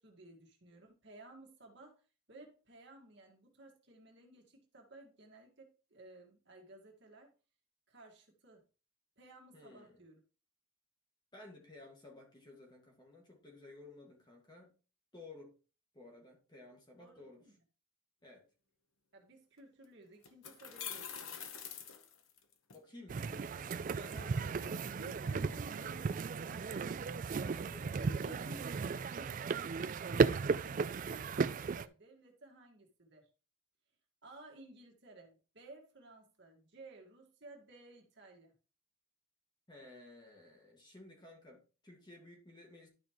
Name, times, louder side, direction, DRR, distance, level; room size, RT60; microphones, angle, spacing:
voice 1, 0.0-2.0 2.3-7.3 7.9-8.6 9.2-10.2 17.0-17.5 19.1-21.4 24.6-27.0 28.0-28.6 28.9-33.3 34.2-38.5, right 2 dB, 55° right, 1 dB, 1.9 m, -56 dB
voice 2, 9.5-10.0 11.3-14.8 15.1-15.6 15.9-17.5 18.2-18.5 22.7-24.8 25.2-25.3 27.4-28.0 39.7-42.9, left 2 dB, 20° left, 0 dB, 1.9 m, -55 dB
sound 1, 19.6-19.7 20.2-22.8, left 8 dB, 80° left, 1.0 m, -45 dB
sound 2, 23.1-31.9, right 5 dB, 40° right, 0.3 m, -35 dB
11.5 x 5.4 x 3.0 m, 0.35 s
head